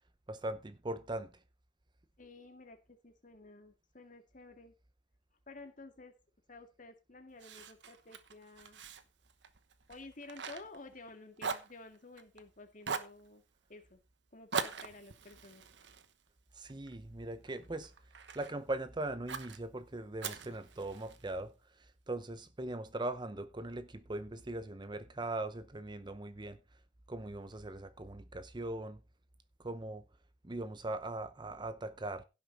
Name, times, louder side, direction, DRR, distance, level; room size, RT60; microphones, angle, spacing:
voice 1, 0.3-1.3 16.5-17.9 18.3-26.6 27.1-29.0 29.6-30.1 30.4-32.2, right 2 dB, 25° right, 0.7 m, -40 dB
voice 2, 2.2-4.7 5.5-6.1 6.5-8.8 9.9-13.4 13.7-14.0 14.3-15.6, left 2 dB, 45° left, 2.1 m, -52 dB
Fire, 7.4-11.1 11.4-12.4 12.8-13.2 14.5-16.9 17.4-18.6 19.3-19.6 20.2-21.3, right 5 dB, 80° right, 1.1 m, -42 dB
16.5 x 6.1 x 4.1 m
head